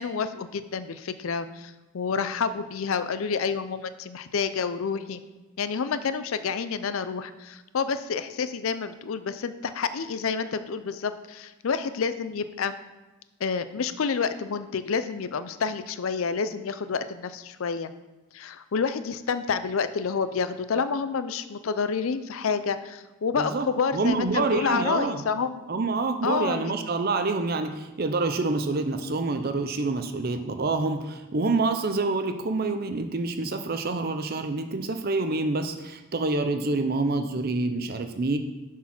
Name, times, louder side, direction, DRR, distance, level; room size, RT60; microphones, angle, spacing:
voice 1, 0.0-5.2 5.6-12.7 13.4-17.9 18.3-25.7 26.2-26.7, left 5 dB, 70° left, 12 dB, 0.5 m, -29 dB
voice 2, 23.3-23.7 23.9-25.2 25.7-38.4, right 3 dB, 45° right, 8 dB, 0.6 m, -27 dB
7.3 x 4.6 x 5.9 m, 1.1 s
head